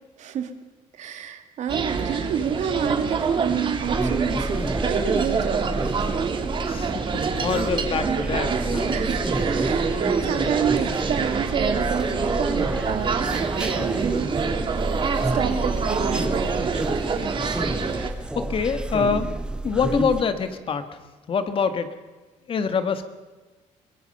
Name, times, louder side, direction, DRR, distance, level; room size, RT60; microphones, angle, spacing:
voice 1, 0.2-0.5 0.9-6.1 8.9-9.2 9.5-14.6 15.2-16.7, right 8 dB, 65° right, 7 dB, 2.0 m, -29 dB
sound 1, 1.7-18.1, right 5 dB, 40° right, 2.0 m, -26 dB
sound 2, 3.8-20.2, right 1 dB, 5° right, 0.8 m, -30 dB
voice 2, 6.7-9.0 18.3-19.3 19.6-20.9 21.3-21.9 22.5-23.1, left 6 dB, 45° left, 9 dB, 1.7 m, -25 dB
23.0 x 20.5 x 5.6 m, 1.3 s
cardioid pair, 130°, 13 cm